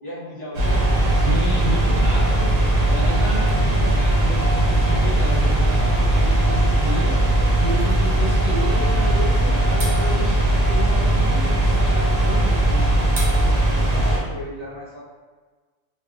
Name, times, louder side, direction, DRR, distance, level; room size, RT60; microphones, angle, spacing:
voice 1, 0.0-1.4 13.8-15.0, equal, 30° right, -10 dB, 0.4 m, -36 dB
sound 1, 0.5-14.2, right 1 dB, 80° right, 1.1 m, -19 dB
voice 2, 1.1-7.2 7.6-12.9, right 1 dB, 80° left, -8 dB, 1.2 m, -31 dB
2.6 x 2.3 x 2.4 m, 1.4 s
omnidirectional pair, 1.3 m